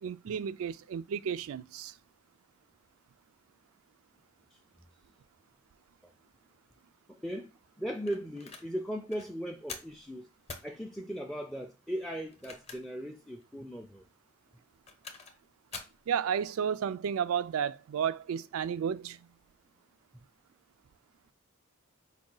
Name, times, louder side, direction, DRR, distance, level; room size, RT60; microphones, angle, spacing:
voice 1, 0.0-1.9 16.1-19.3, right 7 dB, 80° right, 0.3 m, -32 dB
voice 2, 7.1-10.3 10.6-14.0, equal, ahead, 0.3 m, -38 dB
sound 1, 8.1-8.7 9.1-9.3 9.7-10.0 10.5-10.7 12.2-13.0 13.4-13.5 14.6-15.4 15.7-16.0, left 4 dB, 30° left, 0.7 m, -45 dB
4.8 x 2.3 x 3.8 m
head